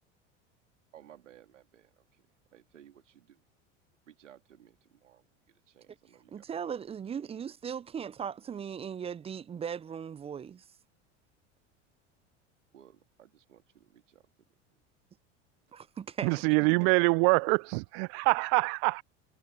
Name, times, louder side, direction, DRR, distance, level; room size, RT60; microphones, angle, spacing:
voice 1, 0.9-3.4 4.0-5.3 5.7-6.8 7.2-7.3 12.7-14.2, right 10 dB, 85° right, 2.3 m, -58 dB
voice 2, 6.3-10.6 15.7-16.3, right 7 dB, 15° right, 0.4 m, -38 dB
voice 3, 16.2-19.0, right 34 dB, 60° right, 0.6 m, -25 dB
hypercardioid pair, 80°, 36 cm